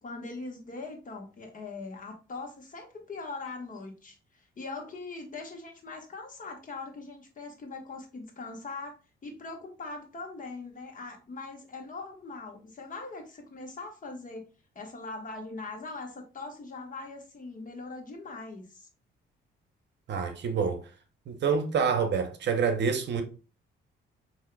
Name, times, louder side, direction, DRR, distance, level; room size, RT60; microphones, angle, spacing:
voice 1, 0.0-9.0 9.2-14.5 14.7-18.9, left 3 dB, 40° left, 1.3 m, -41 dB
voice 2, 20.1-20.8 21.3-23.2, right 6 dB, 60° right, 0.8 m, -27 dB
5.4 x 2.7 x 2.2 m
cardioid pair, 90°, 20 cm